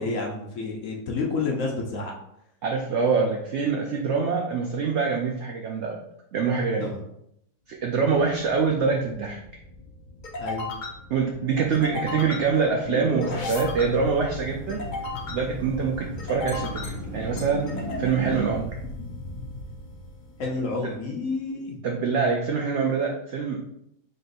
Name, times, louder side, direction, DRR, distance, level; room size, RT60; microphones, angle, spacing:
voice 1, 0.0-2.1 6.8-7.0 10.4-10.7 20.4-21.8, left 3 dB, 60° left, 0 dB, 1.0 m, -29 dB
voice 2, 2.6-6.0 6.3-6.9 7.7-9.4 11.1-14.8 15.3-17.7 18.0-18.8 21.8-23.6, right 5 dB, 90° right, 1 dB, 0.6 m, -25 dB
sound 1, 8.3-20.7, left 2 dB, 85° left, 0.4 m, -36 dB
sound 2, 12.5-18.5, right 2 dB, 45° right, 1.7 m, -37 dB
4.0 x 3.8 x 2.5 m, 0.76 s
omnidirectional pair, 1.7 m